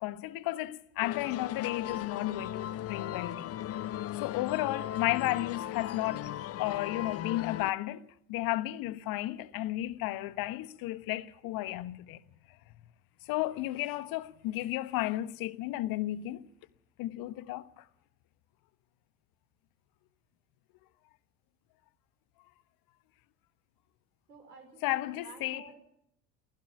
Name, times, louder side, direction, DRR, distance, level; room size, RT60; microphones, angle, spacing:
voice 1, 0.0-3.6 3.9-6.3 6.6-12.2 13.2-16.4 17.0-17.8 24.8-25.6, left 16 dB, 50° left, 1.2 m, -33 dB
sound 1, 1.0-7.7, left 12 dB, 30° left, 0.7 m, -37 dB
voice 2, 24.3-25.8, right 4 dB, 80° right, 4.8 m, -52 dB
28.0 x 16.0 x 5.8 m
figure-of-eight pair, 65°, 46 cm